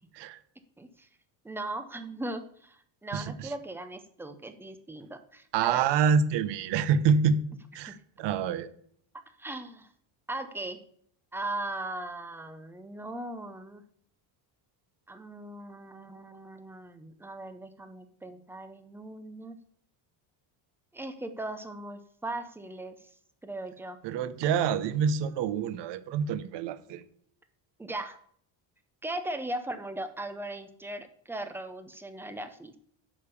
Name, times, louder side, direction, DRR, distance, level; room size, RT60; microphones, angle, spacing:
voice 1, 0.8-1.1 1.4-5.8 7.9-8.0 9.4-9.9 10.3-10.8 11.3-13.8 15.1-19.6 20.9-23.0 23.4-24.0 27.8-28.2 29.0-32.8, right 2 dB, 5° right, 9 dB, 0.4 m, -38 dB
voice 2, 3.1-3.5 5.5-7.5 7.7-8.7 24.0-27.0, right 6 dB, 60° right, 14 dB, 0.8 m, -27 dB
10.0 x 5.1 x 6.8 m, 0.64 s
cardioid pair, 170°, 49 cm